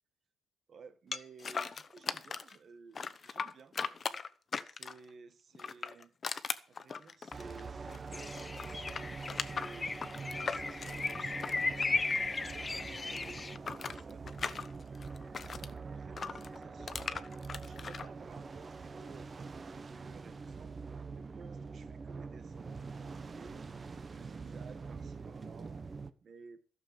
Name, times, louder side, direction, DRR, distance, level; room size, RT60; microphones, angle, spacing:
voice 1, 0.7-3.8 4.6-6.2 6.7-9.0 9.5-14.3 15.4-20.7 21.1-23.7 24.1-25.8 26.2-26.6, right 5 dB, 50° right, 1.7 m, -55 dB
sound 1, 1.1-2.6 2.9-5.1 5.5-8.1 8.3-12.5 12.8-15.7 16.2-18.1, left 5 dB, 40° left, 1.0 m, -39 dB
sound 2, 7.3-26.1, right 4 dB, 35° right, 1.1 m, -44 dB
sound 3, 8.1-13.6, left 3 dB, 25° left, 0.5 m, -36 dB
12.5 x 7.0 x 8.2 m
cardioid pair, 90°, 0 cm